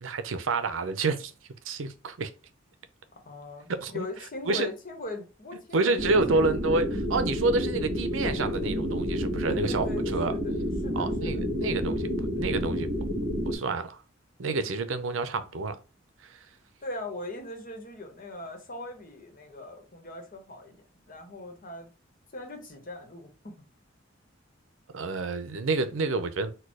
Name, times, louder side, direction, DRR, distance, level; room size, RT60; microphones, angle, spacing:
voice 1, 0.0-1.3 1.7-2.3 3.7-4.1 4.5-4.7 5.7-10.3 10.9-12.9 13.4-14.0 14.4-15.8 16.2-16.4 24.9-26.5, right 3 dB, 80° right, 0.6 m, -28 dB
voice 2, 3.2-6.4 9.4-10.5 10.8-11.5 16.8-20.7 21.1-21.9 22.3-23.7, left 2 dB, 45° left, 1.1 m, -40 dB
sound 1, 6.0-13.6, equal, 50° right, 1.9 m, -29 dB
4.4 x 2.3 x 4.7 m
head